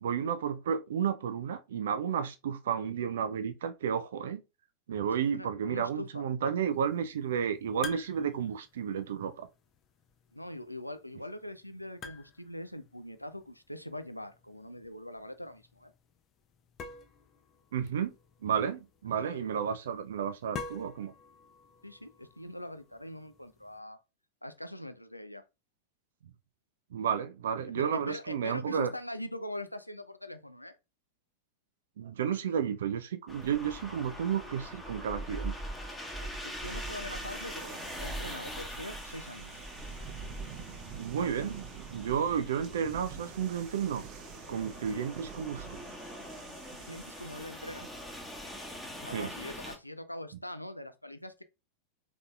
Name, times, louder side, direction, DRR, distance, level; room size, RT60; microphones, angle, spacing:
voice 1, 0.0-4.4 4.9-9.5 17.7-18.1 18.4-21.1 26.9-28.9 32.0-35.6 41.0-41.7 41.9-44.0 44.5-45.8 49.1-49.3, right 8 dB, 60° right, 0.4 m, -32 dB
voice 2, 5.3-6.3 10.3-15.9 19.1-19.5 21.8-24.0 24.4-25.4 27.7-30.8 36.2-39.6 46.8-47.9 49.0-51.4, left 1 dB, 90° left, 0.4 m, -42 dB
sound 1, 6.7-23.8, left 5 dB, 30° left, 0.6 m, -50 dB
sound 2, 33.3-49.8, equal, 5° left, 1.0 m, -43 dB
sound 3, 36.6-48.2, right 8 dB, 40° right, 0.8 m, -48 dB
3.9 x 3.6 x 2.3 m
figure-of-eight pair, 90°, 0 cm